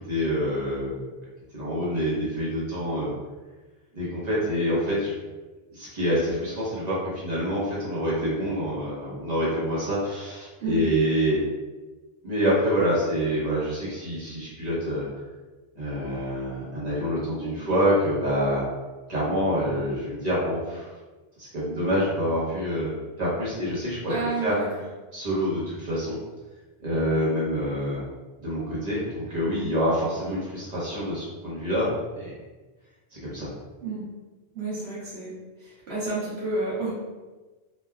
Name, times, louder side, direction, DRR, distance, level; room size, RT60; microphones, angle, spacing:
voice 1, 0.1-1.1 1.5-3.1 3.9-5.2 5.7-11.4 12.2-15.0 15.8-18.6 19.1-20.9 21.4-22.9 23.2-24.1 24.4-24.5 25.1-26.2 26.8-28.0 28.4-32.3 33.1-33.5, equal, 45° right, -8 dB, 1.0 m, -26 dB
voice 2, 24.1-24.7 33.8-34.0 34.5-35.3 35.6-36.9, right 3 dB, 80° right, -8 dB, 1.2 m, -30 dB
3.1 x 2.3 x 2.2 m, 1.2 s
omnidirectional pair, 1.0 m